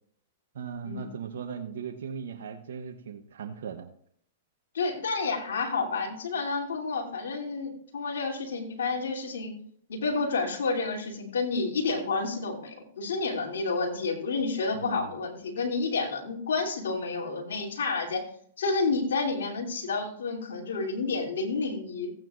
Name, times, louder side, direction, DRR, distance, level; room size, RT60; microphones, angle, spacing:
voice 1, 0.5-3.9 14.8-15.1, right 7 dB, 75° right, 5 dB, 0.8 m, -38 dB
voice 2, 4.7-9.5 9.9-18.2 18.6-22.1, left 4 dB, 80° left, 1 dB, 2.9 m, -30 dB
15.5 x 9.0 x 2.5 m, 0.63 s
hypercardioid pair, 125°, 0 cm